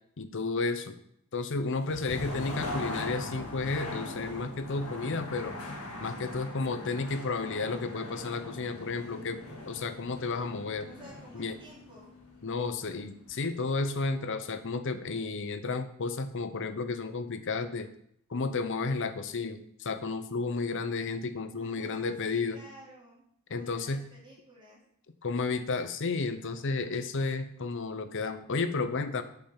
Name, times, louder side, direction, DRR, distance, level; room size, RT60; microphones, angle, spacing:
voice 1, 0.2-0.9 1.3-5.6 6.0-10.9 11.3-11.6 12.4-17.9 18.3-22.6 23.5-24.0 25.2-29.2, left 3 dB, 60° left, 10 dB, 0.7 m, -32 dB
sound 1, 1.7-13.5, left 2 dB, 85° left, 1.7 m, -41 dB
voice 2, 6.0-6.6 10.8-12.1 21.5-23.2 23.5-24.8, equal, 25° right, -4 dB, 2.5 m, -53 dB
7.2 x 5.6 x 5.8 m, 0.69 s
head